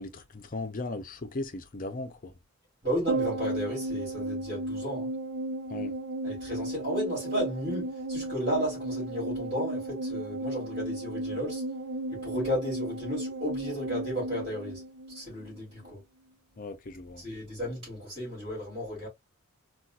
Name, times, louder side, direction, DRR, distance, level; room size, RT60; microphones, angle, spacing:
voice 1, 0.0-2.3 5.7-5.9 16.6-17.2, left 2 dB, 40° left, 0.5 m, -37 dB
voice 2, 2.8-5.1 6.2-11.6 12.1-14.8 15.1-16.0 17.2-19.1, equal, 30° right, 2.3 m, -33 dB
sound 1, 3.1-15.6 15.9-16.0, right 2 dB, 70° right, 0.5 m, -34 dB
4.0 x 2.4 x 2.3 m
head